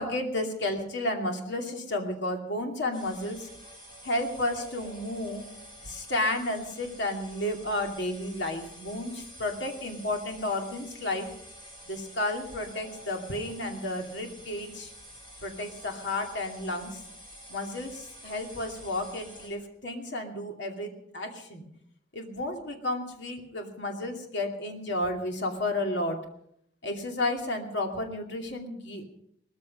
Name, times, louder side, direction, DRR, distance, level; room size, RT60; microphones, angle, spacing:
voice 1, 0.0-3.5 4.0-5.5 5.8-11.3 11.8-14.9 15.4-17.0 17.5-21.7 22.1-26.2 26.8-29.0, left 1 dB, 60° left, 2 dB, 2.5 m, -32 dB
sound 1, 2.9-19.5, equal, 25° left, 5.6 m, -48 dB
18.5 x 14.5 x 5.3 m, 0.71 s
head